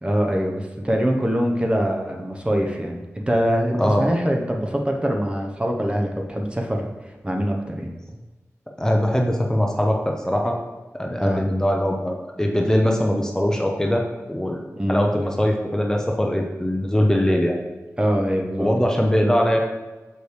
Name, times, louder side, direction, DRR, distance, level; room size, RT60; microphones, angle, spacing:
voice 1, 0.0-7.9 11.2-11.4 14.8-15.0 18.0-18.7, equal, 20° right, 1 dB, 0.8 m, -23 dB
voice 2, 8.8-10.6 10.9-14.6 14.9-17.6 18.6-19.6, equal, 10° left, 1 dB, 0.7 m, -21 dB
6.5 x 5.1 x 3.2 m, 1.2 s
wide cardioid pair, 65°, 5 cm